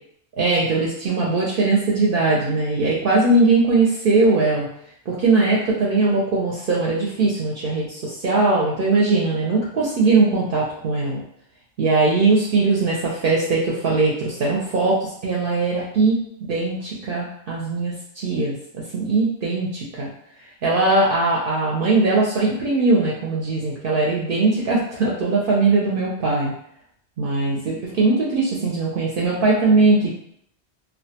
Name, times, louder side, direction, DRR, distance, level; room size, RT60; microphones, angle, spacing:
voice 1, 0.4-4.7 5.1-11.2 11.8-20.1 20.6-26.5 27.2-30.1, right 3 dB, 60° right, -4 dB, 0.6 m, -20 dB
2.3 x 2.1 x 2.7 m, 0.68 s
omnidirectional pair, 1.1 m